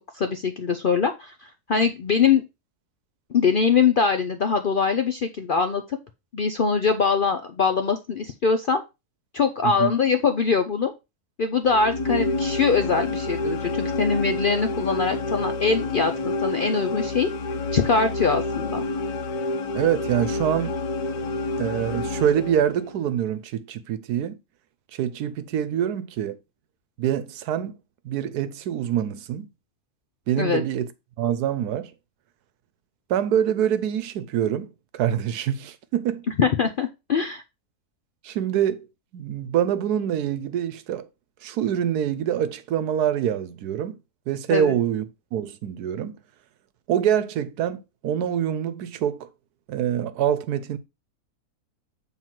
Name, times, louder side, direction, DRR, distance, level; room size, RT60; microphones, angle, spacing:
voice 1, 0.1-2.4 3.3-6.0 6.3-8.8 9.3-10.9 11.4-17.3 17.7-18.8 30.4-30.6 36.4-37.4 44.5-44.7, left 5 dB, 60° left, 0.5 m, -23 dB
sound 1, 11.6-23.0, left 2 dB, 80° left, 1.5 m, -28 dB
voice 2, 19.7-20.8 21.6-24.4 24.9-26.4 27.0-27.8 28.0-29.5 30.3-30.9 31.2-31.9 33.1-36.2 38.2-38.9 39.1-41.1 41.4-44.0 44.3-45.0 45.3-46.2 46.9-49.3 49.7-50.8, right 9 dB, 90° right, 1.2 m, -25 dB
7.4 x 3.9 x 4.5 m
omnidirectional pair, 1.6 m